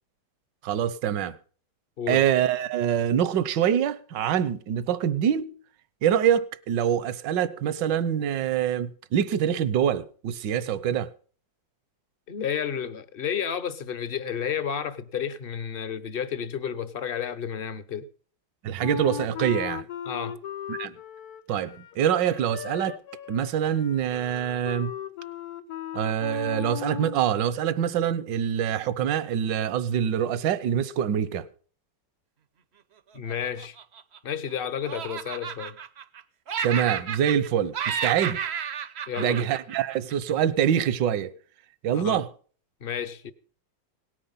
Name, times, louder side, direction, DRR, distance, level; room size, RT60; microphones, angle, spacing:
voice 1, 0.6-1.4 2.1-5.5 6.0-11.1 18.6-19.8 20.7-20.9 21.5-23.0 23.3-24.9 25.9-31.5 36.6-38.4 39.2-41.3 41.8-42.3, right 9 dB, 75° right, 1.5 m, -25 dB
voice 2, 12.3-18.1 20.1-20.4 33.1-33.8 34.2-35.8 39.1-39.5 41.9-42.2 42.8-43.3, left 8 dB, 40° left, 0.8 m, -31 dB
Wind instrument woodwind instrument, 18.8-27.2, left 10 dB, 60° left, 1.2 m, -37 dB
Laughter, 33.3-34.5 34.8-36.2 36.5-37.5 37.7-40.3, right 7 dB, 55° right, 0.7 m, -32 dB
18.0 x 10.0 x 5.5 m
omnidirectional pair, 2.0 m